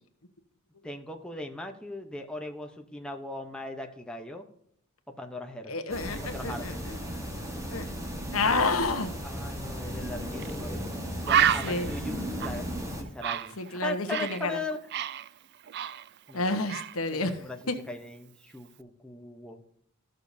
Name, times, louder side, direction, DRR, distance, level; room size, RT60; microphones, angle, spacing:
voice 1, 0.8-4.5 5.2-5.7 6.2-6.7 8.4-8.7 9.2-10.9 11.2-12.6 13.0-14.8 16.3-16.6 17.1-17.6 17.9-19.6, left 2 dB, 5° left, 3 dB, 0.9 m, -39 dB
voice 2, 5.7-6.7 7.7-7.8 8.3-9.1 11.6-11.9 13.6-14.5 16.3-17.3 17.7-17.8, left 3 dB, 85° left, 7 dB, 1.1 m, -29 dB
sound 1, 5.9-13.0, equal, 15° right, 1.5 m, -35 dB
Bird, 10.4-10.6 10.9-11.0 11.3-14.4 14.7-16.4 16.7-17.0, right 10 dB, 55° right, 0.4 m, -29 dB
14.0 x 6.6 x 2.7 m, 0.70 s
head